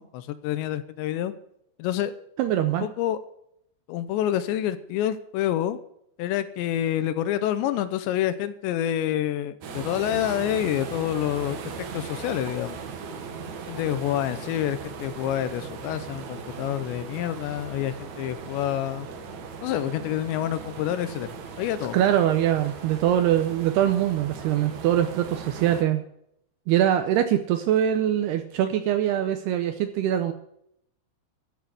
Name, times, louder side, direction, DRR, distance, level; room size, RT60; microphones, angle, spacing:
voice 1, 0.0-1.3 1.8-2.1 2.8-3.2 3.9-5.8 6.2-12.8 13.7-19.1 19.6-22.0, left 11 dB, 80° left, 13 dB, 2.8 m, -28 dB
voice 2, 2.4-2.9 21.9-26.0 26.7-30.3, right 11 dB, 80° right, 9 dB, 2.4 m, -23 dB
sound 1, 9.6-25.8, right 5 dB, 65° right, 1.9 m, -38 dB
14.0 x 7.3 x 8.1 m, 0.75 s
omnidirectional pair, 5.4 m